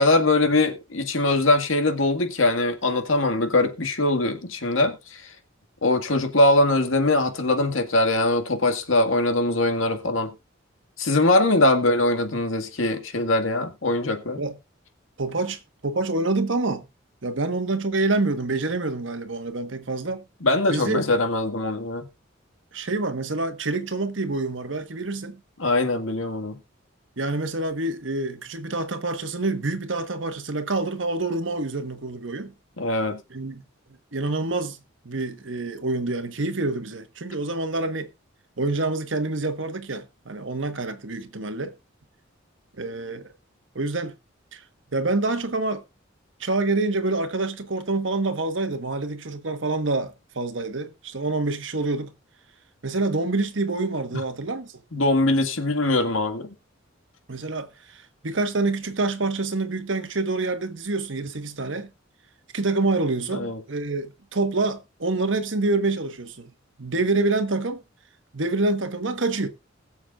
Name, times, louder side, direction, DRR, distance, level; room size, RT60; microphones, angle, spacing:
voice 1, 0.0-5.2 5.8-10.3 11.0-14.4 20.4-22.1 25.6-26.6 32.8-33.2 54.9-56.5 63.3-63.6, left 2 dB, 90° left, 1.9 m, -22 dB
voice 2, 15.2-16.8 17.2-20.2 20.7-21.0 22.7-25.4 27.2-32.5 33.3-33.6 34.1-34.8 35.0-38.1 38.6-41.7 42.8-43.3 43.7-44.1 44.5-44.6 44.9-45.8 46.4-52.1 52.8-54.7 57.3-61.9 62.5-66.5 66.8-67.8 68.3-69.5, right 2 dB, 70° right, 1.3 m, -27 dB
21.0 x 7.1 x 2.4 m
head